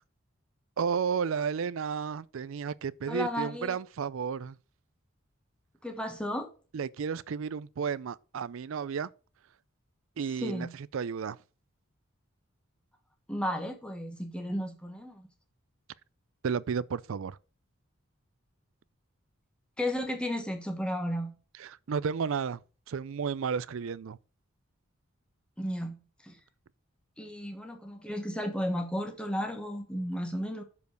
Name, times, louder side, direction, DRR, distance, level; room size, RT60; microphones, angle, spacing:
voice 1, 0.8-4.6 6.7-9.1 10.2-11.4 16.4-17.4 21.6-22.6 22.9-24.2, right 6 dB, 70° right, 0.4 m, -32 dB
voice 2, 3.1-3.8 5.8-6.5 10.4-10.8 13.3-15.3 19.8-21.4 25.6-26.4 27.2-30.6, equal, 5° left, 1.3 m, -34 dB
6.9 x 5.2 x 6.3 m
head